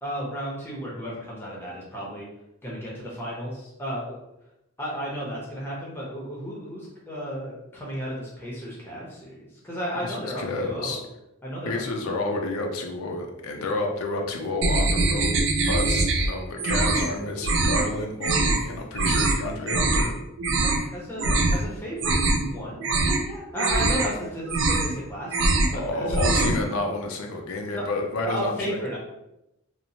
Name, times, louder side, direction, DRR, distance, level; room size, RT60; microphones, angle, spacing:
voice 1, 0.0-2.3 2.6-4.2 4.8-11.0 11.4-12.3 13.5-13.8 20.6-26.5 27.7-27.9 28.2-29.0, equal, 10° left, -5 dB, 0.6 m, -34 dB
voice 2, 10.0-11.0 11.7-20.1 25.7-28.8, left 2 dB, 85° left, 2 dB, 0.4 m, -30 dB
sound 1, 14.6-16.3 16.6-17.1 17.4-17.9 18.2-18.6 19.0-19.4 19.7-20.1 20.4-20.8 21.2-21.6 21.9-22.5 22.8-23.2 23.6-24.1 24.4-25.0 25.3-25.8 26.0-26.6, right 2 dB, 65° right, 0.4 m, -23 dB
2.9 x 2.1 x 2.6 m, 0.88 s
head